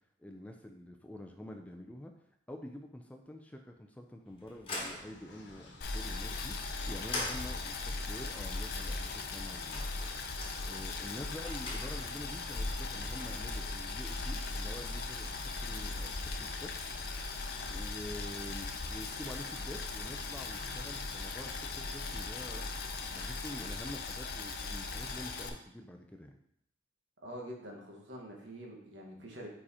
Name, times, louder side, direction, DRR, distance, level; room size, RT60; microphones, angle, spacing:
voice 1, 0.2-2.1 2.5-9.9 10.6-15.3 15.6-16.7 17.7-26.4, left 1 dB, 10° left, 3 dB, 0.4 m, -47 dB
sound 1, 4.3-12.3, left 2 dB, 30° left, 1.3 m, -45 dB
Train, 4.7-23.8, left 1 dB, 75° left, 1.1 m, -54 dB
Boiling, 5.8-25.5, left 3 dB, 55° left, 0.6 m, -38 dB
voice 2, 27.2-29.5, equal, 70° right, 0 dB, 1.4 m, -46 dB
4.9 x 4.9 x 4.2 m, 0.71 s
head